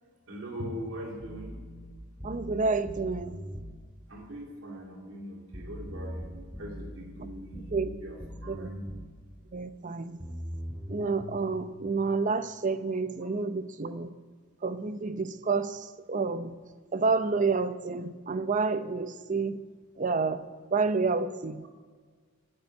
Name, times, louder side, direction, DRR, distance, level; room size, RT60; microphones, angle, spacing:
voice 1, 0.3-1.6 4.1-8.2 8.4-8.8, equal, 75° right, 0 dB, 3.0 m, -41 dB
sound 1, 1.2-3.8 5.5-9.2 10.2-11.9, equal, 25° right, 5.0 m, -41 dB
voice 2, 2.2-3.4 7.7-7.9 8.5-8.7 9.5-10.2 10.9-14.1 14.6-16.6 16.9-19.6 20.0-21.7, right 4 dB, 40° right, 12 dB, 0.6 m, -29 dB
13.0 x 9.6 x 9.3 m, 1.5 s
head